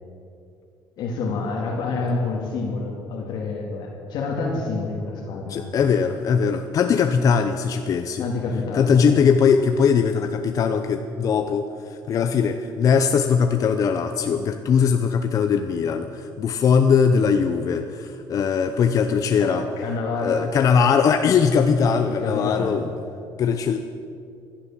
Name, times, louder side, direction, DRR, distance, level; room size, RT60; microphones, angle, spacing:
voice 1, 1.0-5.9 8.2-9.0 19.4-20.5 22.1-22.8, left 3 dB, 70° left, -1 dB, 2.2 m, -28 dB
voice 2, 5.5-8.2 8.7-11.7 12.1-19.6 20.2-22.9 23.4-23.8, left 6 dB, 45° left, 6 dB, 0.8 m, -20 dB
16.0 x 11.5 x 7.3 m, 2.5 s
cardioid pair, 125°, 8 cm